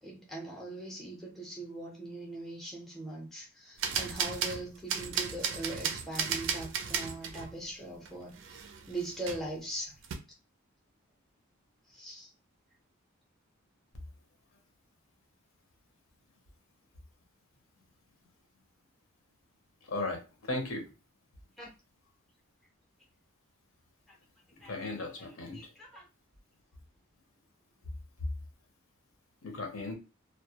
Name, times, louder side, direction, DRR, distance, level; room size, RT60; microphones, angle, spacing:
voice 1, 0.0-9.9 11.9-12.3 21.6-21.7 24.6-24.9 25.2-25.3 25.5-26.1, right 1 dB, ahead, -1 dB, 0.5 m, -41 dB
sound 1, 3.8-7.6 8.1-8.2 8.3-9.6 10.0-10.2, right 6 dB, 55° right, 0.4 m, -34 dB
voice 2, 19.9-20.9 24.6-25.7 29.4-29.9, left 2 dB, 75° left, 3 dB, 0.7 m, -36 dB
2.2 x 2.1 x 2.7 m, 0.29 s
head